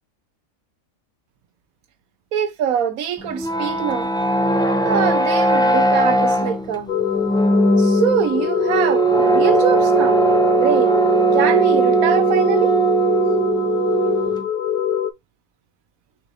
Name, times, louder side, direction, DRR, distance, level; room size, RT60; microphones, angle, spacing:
voice 1, 2.3-4.1 4.8-6.9 7.8-10.2 10.5-10.9 11.3-12.8, right 8 dB, 90° right, 1.2 m, -23 dB
sound 1, 3.2-14.4, right 3 dB, 5° left, 0.4 m, -19 dB
sound 2, 6.9-15.1, left 10 dB, 70° left, 0.5 m, -23 dB
4.3 x 2.6 x 4.7 m
omnidirectional pair, 1.4 m